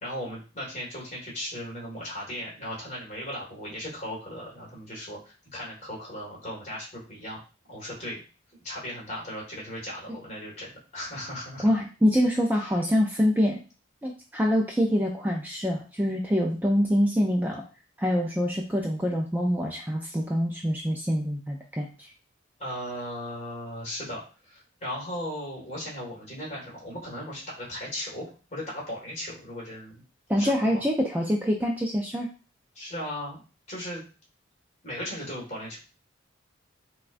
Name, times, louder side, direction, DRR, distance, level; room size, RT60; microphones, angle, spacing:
voice 1, 0.0-7.4 7.7-8.2 8.6-11.7 12.5-12.8 22.6-30.0 30.4-30.8 32.8-33.4 33.7-34.0 34.8-35.8, equal, 35° left, -4 dB, 1.7 m, -37 dB
voice 2, 11.6-13.6 14.0-17.6 18.0-22.1 30.3-32.3, equal, 10° right, 0 dB, 0.4 m, -25 dB
5.6 x 2.3 x 2.5 m, 0.34 s
head